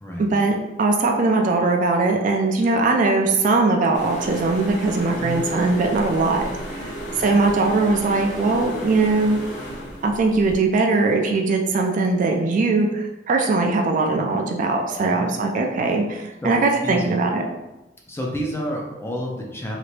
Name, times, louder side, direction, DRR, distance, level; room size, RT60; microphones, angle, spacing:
voice 1, 0.2-6.4 6.7-9.4 10.0-17.4, right 3 dB, 45° right, 2 dB, 0.3 m, -20 dB
sound 1, 3.9-10.6, equal, 45° left, 0.9 m, -33 dB
voice 2, 5.2-5.5 7.2-7.4 15.0-15.3 16.4-17.2 18.1-19.8, equal, 15° left, -1 dB, 0.5 m, -30 dB
2.8 x 2.5 x 3.2 m, 1.0 s
head